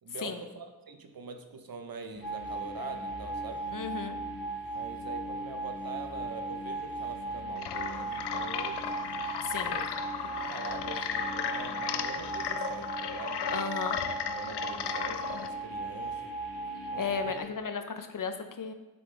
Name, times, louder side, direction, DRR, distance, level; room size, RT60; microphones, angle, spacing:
voice 1, 0.0-3.6 4.7-9.0 9.6-9.9 10.2-13.6 14.3-16.3 16.9-17.4, right 4 dB, 60° right, 6 dB, 1.0 m, -44 dB
sound 1, 2.1-17.5, left 1 dB, 30° left, 2.4 m, -46 dB
sound 2, 2.2-17.4, right 3 dB, 15° right, 2.8 m, -38 dB
voice 2, 3.7-4.2 9.4-9.7 13.5-14.0 17.0-18.7, left 5 dB, 55° left, 7 dB, 0.9 m, -34 dB
sound 3, 7.6-15.5, left 8 dB, 80° left, 0.6 m, -35 dB
8.0 x 7.0 x 3.4 m, 1.1 s
cardioid pair, 55°, 39 cm